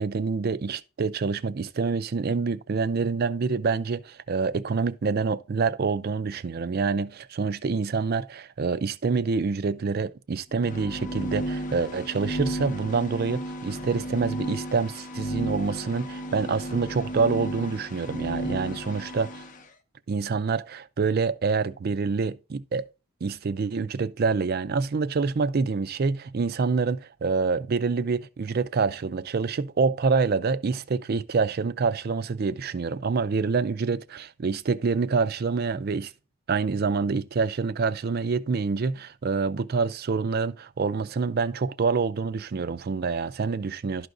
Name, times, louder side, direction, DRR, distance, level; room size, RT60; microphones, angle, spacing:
voice 1, 0.0-19.4 20.1-22.9 23.2-36.1 36.5-44.1, right 4 dB, 45° right, 0.4 m, -26 dB
sound 1, 10.5-19.6, right 1 dB, 35° left, 0.6 m, -34 dB
12.0 x 4.8 x 2.5 m
head